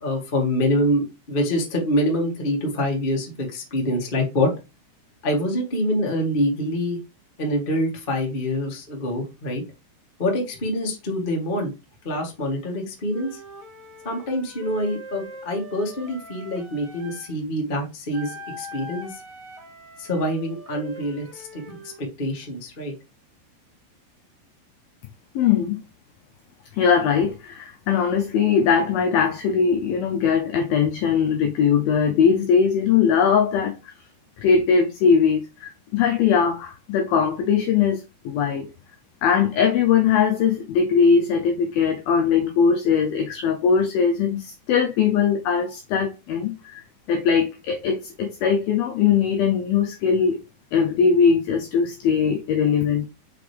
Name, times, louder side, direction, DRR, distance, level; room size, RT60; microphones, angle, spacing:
voice 1, 0.0-4.5 5.2-7.0 7.4-9.6 10.2-11.7 12.0-13.4 14.0-19.1 20.0-22.9, left 1 dB, 75° left, 0.5 m, -25 dB
Wind instrument woodwind instrument, 13.1-17.3 18.1-22.0, right 1 dB, 80° right, 1.3 m, -42 dB
voice 2, 25.4-25.8 26.7-33.8 34.4-38.7 39.2-46.8 47.1-50.4 50.7-53.0, left 6 dB, 90° left, 2.1 m, -20 dB
5.8 x 5.1 x 3.4 m
omnidirectional pair, 5.1 m